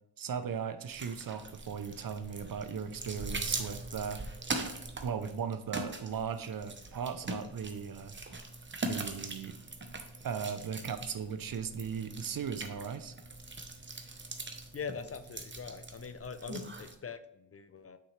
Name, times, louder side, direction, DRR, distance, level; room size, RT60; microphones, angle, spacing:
voice 1, 0.2-4.2 5.0-8.1 8.8-9.6 10.2-13.1, right 7 dB, 55° right, 10 dB, 0.7 m, -37 dB
sound 1, 0.9-16.9, right 2 dB, 30° right, 1.0 m, -41 dB
voice 2, 14.7-18.0, left 5 dB, 35° left, 11 dB, 0.5 m, -42 dB
7.0 x 5.8 x 3.3 m, 0.78 s
cardioid pair, 65°, 41 cm